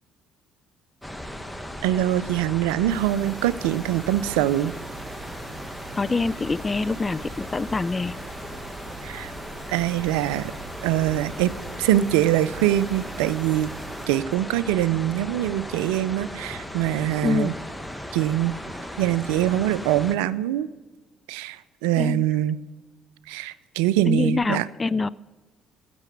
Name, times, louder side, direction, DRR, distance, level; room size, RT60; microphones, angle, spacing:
sound 1, 1.0-20.2, equal, 5° left, 1.1 m, -37 dB
voice 1, 1.8-4.7 9.0-9.3 9.7-10.5 10.8-13.7 14.1-17.5 18.1-18.5 19.0-20.7 21.3-22.6 23.3-24.7, right 13 dB, 80° right, 18 dB, 0.4 m, -23 dB
sound 2, 2.9-14.1, right 7 dB, 50° right, 2.3 m, -44 dB
voice 2, 6.0-8.1 17.2-17.5 22.0-22.2 24.1-25.1, left 3 dB, 30° left, 19 dB, 0.3 m, -25 dB
15.0 x 6.8 x 5.2 m, 1.3 s
hypercardioid pair, 55°, 0 cm